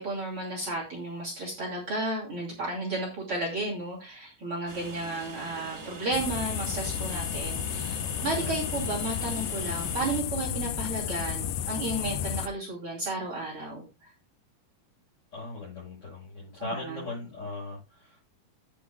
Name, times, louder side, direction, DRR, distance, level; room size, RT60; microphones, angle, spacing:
voice 1, 0.0-14.1 16.6-17.0, right 2 dB, 40° right, -3 dB, 3.3 m, -33 dB
Train, 4.7-10.2, right 3 dB, 60° right, 0.6 m, -43 dB
sound 1, 6.1-12.5, left 9 dB, 85° left, 2.5 m, -32 dB
voice 2, 8.0-8.5 15.3-18.2, left 2 dB, 25° left, -7 dB, 7.3 m, -39 dB
12.5 x 10.0 x 2.2 m, 0.27 s
omnidirectional pair, 4.3 m